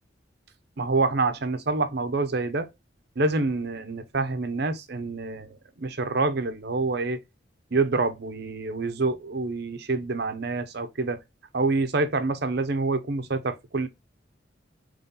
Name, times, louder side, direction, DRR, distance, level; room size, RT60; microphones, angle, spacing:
voice 1, 0.8-2.7 3.2-7.2 7.7-11.2 11.5-13.9, right 3 dB, 55° right, 0.7 m, -27 dB
4.1 x 3.1 x 3.8 m
head